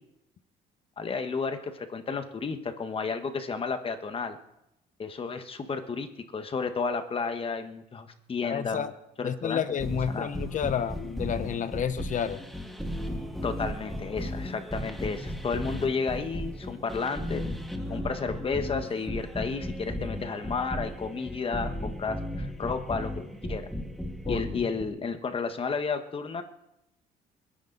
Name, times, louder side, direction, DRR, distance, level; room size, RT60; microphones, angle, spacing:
voice 1, 1.0-4.4 5.0-8.9 9.2-9.6 10.1-10.3 13.4-17.4 17.9-23.1 23.5-23.6 24.3-26.4, left 5 dB, 35° left, 8 dB, 1.5 m, -32 dB
voice 2, 8.4-8.9 9.2-12.4 24.2-24.7, left 8 dB, 50° left, 12 dB, 1.1 m, -30 dB
sound 1, 9.7-24.8, left 1 dB, ahead, 2.1 m, -35 dB
29.5 x 10.5 x 4.1 m, 0.87 s
cardioid pair, 110°, 17 cm